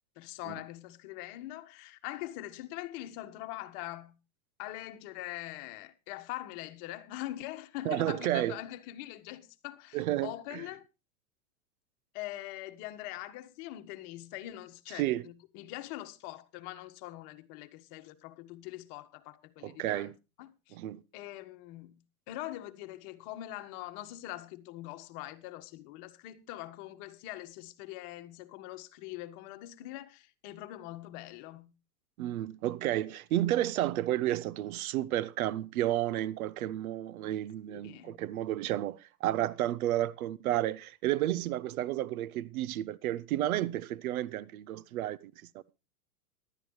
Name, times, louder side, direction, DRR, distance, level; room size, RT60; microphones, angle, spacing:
voice 1, 0.2-4.2 4.6-10.8 12.1-20.1 20.4-20.8 21.1-22.0 22.3-31.7 37.7-38.2, left 15 dB, 50° left, 1.6 m, -43 dB
voice 2, 7.8-8.6 9.9-10.6 14.9-15.3 19.6-20.2 20.7-21.0 32.2-45.3, right 13 dB, 70° right, 0.8 m, -31 dB
18.0 x 12.0 x 3.2 m
hypercardioid pair, 120°, 45 cm